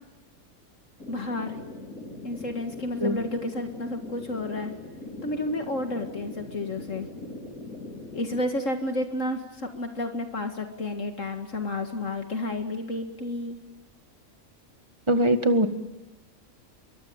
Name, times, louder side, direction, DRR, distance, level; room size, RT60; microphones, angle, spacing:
sound 1, 1.0-8.4, left 2 dB, 80° left, 5.6 m, -41 dB
voice 1, 1.1-1.6 2.2-4.7 5.2-7.1 8.1-13.6, left 1 dB, 60° left, 6 dB, 2.3 m, -31 dB
voice 2, 15.1-15.7, right 1 dB, 20° right, 9 dB, 1.8 m, -21 dB
25.5 x 23.5 x 8.7 m, 1.0 s
omnidirectional pair, 1.5 m